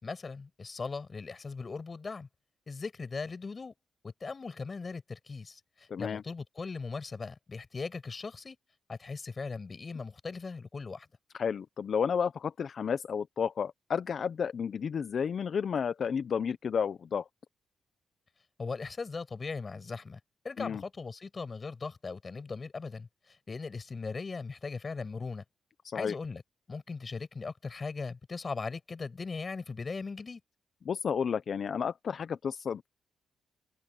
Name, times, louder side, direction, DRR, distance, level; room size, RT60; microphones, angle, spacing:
voice 1, 0.0-2.3 2.7-3.7 4.0-8.6 8.9-11.1 18.6-20.2 20.4-25.4 25.9-26.4 26.7-30.4, left 4 dB, 35° left, 6.1 m, -39 dB
voice 2, 5.9-6.2 11.3-17.2 20.6-20.8 25.8-26.1 30.9-32.9, left 7 dB, 55° left, 0.7 m, -32 dB
open air
cardioid pair, 100°, 0 cm